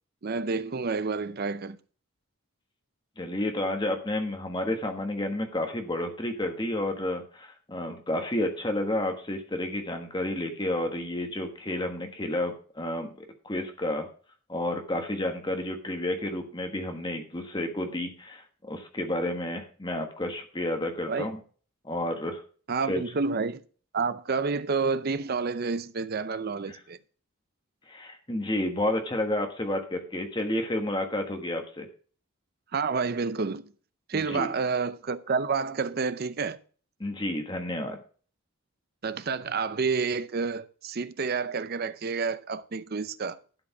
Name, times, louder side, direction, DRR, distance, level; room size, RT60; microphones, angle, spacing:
voice 1, 0.2-1.8 21.1-21.3 22.7-23.6 23.9-27.0 32.7-33.7 34.1-36.6 39.0-43.4, right 4 dB, 45° right, 0.5 m, -29 dB
voice 2, 3.2-14.1 14.5-21.4 21.8-22.4 22.9-23.0 26.7-26.8 27.9-31.9 34.1-34.5 37.0-38.0, left 1 dB, 20° left, 1.3 m, -31 dB
12.0 x 5.2 x 5.9 m
head